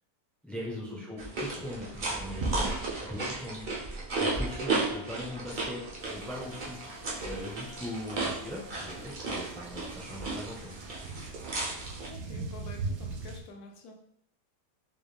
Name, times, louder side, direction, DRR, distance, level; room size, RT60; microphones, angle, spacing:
voice 1, 0.4-2.7 3.0-3.8 4.1-6.8 7.2-10.8, left 1 dB, ahead, -4 dB, 0.3 m, -40 dB
sound 1, 1.2-12.1, right 3 dB, 50° right, 0.5 m, -34 dB
Wind instrument woodwind instrument, 4.1-9.4, left 6 dB, 50° left, 0.8 m, -54 dB
sound 2, 6.0-13.4, right 3 dB, 85° right, 1.2 m, -42 dB
voice 2, 12.1-13.9, left 2 dB, 70° left, 2 dB, 1.1 m, -48 dB
4.6 x 2.2 x 3.3 m, 0.71 s
omnidirectional pair, 1.8 m